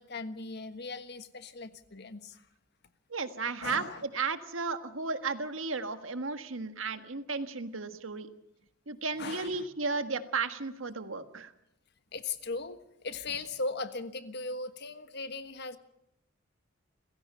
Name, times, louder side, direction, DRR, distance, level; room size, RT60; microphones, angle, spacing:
voice 1, 0.0-2.5 3.6-4.0 9.2-9.7 12.1-15.8, left 3 dB, 60° left, 10 dB, 1.4 m, -38 dB
voice 2, 3.1-8.3 8.9-11.5, right 4 dB, 90° right, 9 dB, 1.6 m, -34 dB
29.5 x 16.5 x 5.6 m, 0.83 s
head